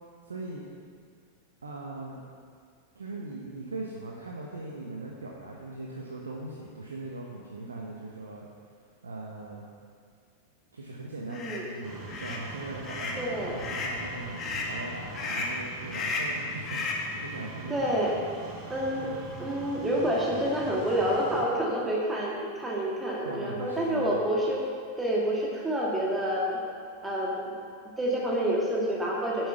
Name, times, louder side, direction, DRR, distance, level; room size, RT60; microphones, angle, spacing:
voice 1, 0.2-0.6 1.6-2.3 2.9-8.5 9.0-9.6 10.7-18.0 19.0-19.2 23.2-24.2, right 2 dB, 75° right, -2 dB, 1.1 m, -40 dB
sound 1, 11.3-11.6 12.1-12.4 12.8-13.2 13.6-14.0 14.4-14.7 15.1-15.6 15.9-16.4 16.7-17.1, left 3 dB, 30° left, 1.6 m, -33 dB
voice 2, 11.3-11.6 13.2-13.6 17.7-18.1 18.7-19.1 19.4-24.6 25.0-26.6 27.0-27.6 28.0-29.5, right 1 dB, 10° right, -4 dB, 1.7 m, -28 dB
sound 2, 11.8-21.4, right 2 dB, 35° right, 2.0 m, -43 dB
9.8 x 7.8 x 5.7 m, 2.2 s
figure-of-eight pair, 90°, 0 cm